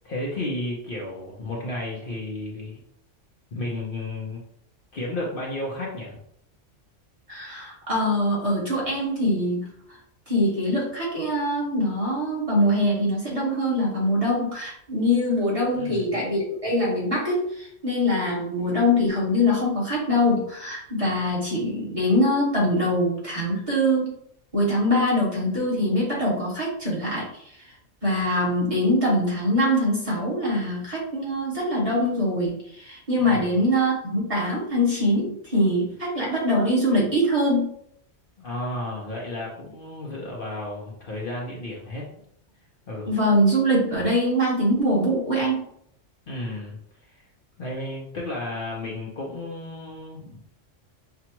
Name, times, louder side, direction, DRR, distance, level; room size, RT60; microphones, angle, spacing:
voice 1, 0.0-2.8 3.5-4.4 4.9-6.2 15.7-16.0 33.2-33.5 38.4-42.0 42.9-43.1 46.3-47.2 47.6-50.4, left 1 dB, 50° left, -3 dB, 0.9 m, -33 dB
voice 2, 7.3-9.7 10.3-24.1 24.5-27.4 28.0-37.7 43.0-45.6, left 1 dB, 30° right, -6 dB, 1.5 m, -23 dB
5.9 x 2.4 x 2.9 m, 0.70 s
omnidirectional pair, 1.3 m